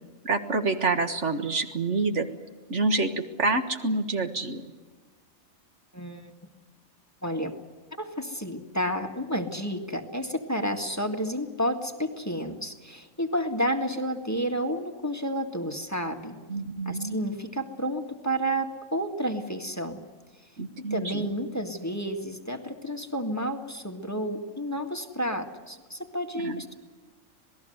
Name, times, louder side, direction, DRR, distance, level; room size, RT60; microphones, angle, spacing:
voice 1, 0.2-2.3 2.7-4.6 16.5-17.2 20.6-21.3 26.3-26.6, right 3 dB, 60° right, 7 dB, 1.9 m, -27 dB
voice 2, 5.9-6.3 7.2-7.5 8.0-16.4 16.9-20.0 20.9-26.8, equal, 10° left, 5 dB, 1.9 m, -31 dB
27.0 x 19.5 x 8.0 m, 1.4 s
omnidirectional pair, 1.4 m